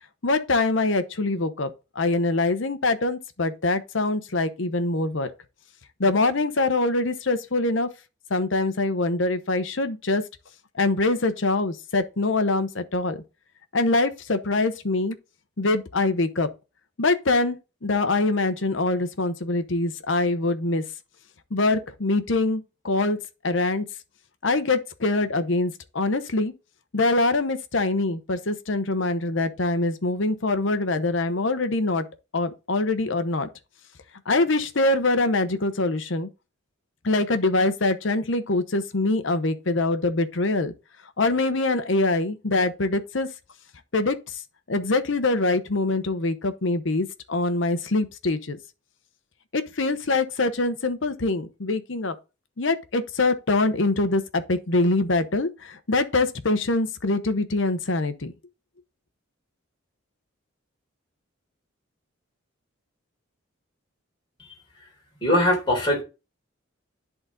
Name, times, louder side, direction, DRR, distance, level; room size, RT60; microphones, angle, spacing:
voice 1, 0.2-5.3 6.0-7.9 8.3-10.2 10.7-13.2 13.7-15.2 15.6-16.5 17.0-17.6 17.8-20.8 21.5-23.2 23.4-23.8 24.4-26.5 26.9-32.1 32.3-33.5 34.3-36.3 37.0-40.7 41.2-43.3 43.9-44.4 44.7-48.6 49.5-52.2 52.6-58.3, left 2 dB, 65° left, 0.9 m, -24 dB
voice 2, 65.2-66.0, left 1 dB, 25° left, 3.8 m, -21 dB
10.5 x 4.0 x 3.8 m
head